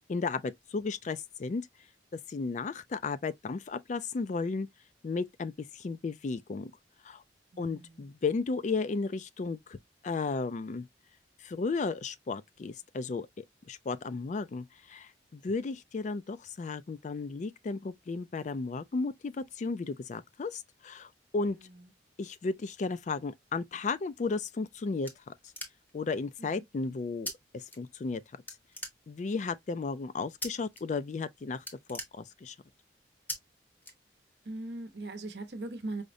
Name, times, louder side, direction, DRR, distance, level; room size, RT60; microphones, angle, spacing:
voice 1, 0.1-1.7 2.3-4.7 5.0-6.7 7.0-7.2 7.6-9.8 10.0-10.9 11.4-21.6 22.2-25.3 25.9-28.2 29.1-32.6, left 4 dB, 40° left, 0.3 m, -34 dB
voice 2, 7.5-8.1 21.4-21.8 26.4-26.6 34.4-36.0, right 2 dB, 60° right, 0.8 m, -40 dB
sound 1, 25.1-26.1 27.3-27.4 27.7-28.2 28.5-29.4 30.4-30.8 31.1-31.3 31.6-32.7 33.3-33.4 33.8-34.5, left 1 dB, 10° left, 0.7 m, -41 dB
4.9 x 2.1 x 2.5 m
head